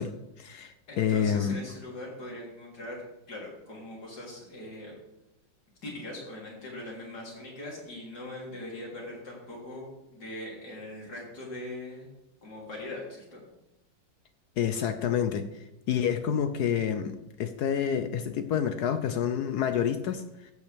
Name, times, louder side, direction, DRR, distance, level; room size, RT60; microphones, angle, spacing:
voice 1, 0.0-1.6 14.6-20.5, left 8 dB, 70° left, 9 dB, 1.0 m, -29 dB
voice 2, 0.9-3.0 3.3-5.0 5.8-12.1 12.4-13.4, left 1 dB, 55° left, -3 dB, 3.8 m, -41 dB
14.0 x 8.5 x 3.4 m, 0.91 s
omnidirectional pair, 2.1 m